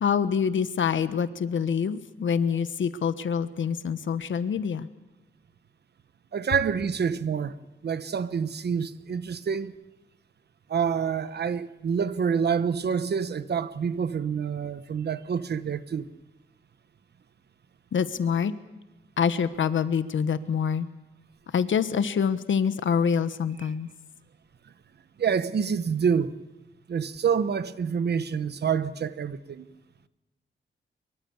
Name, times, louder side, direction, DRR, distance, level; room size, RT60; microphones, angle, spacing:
voice 1, 0.0-4.9 17.9-18.5 19.2-20.9 21.5-23.9, left 7 dB, 75° left, 1.2 m, -26 dB
voice 2, 6.3-7.6 7.8-9.8 10.7-16.1 25.2-26.4 26.9-29.7, right 6 dB, 55° right, 1.0 m, -27 dB
24.5 x 23.5 x 7.2 m
wide cardioid pair, 160°, 20 cm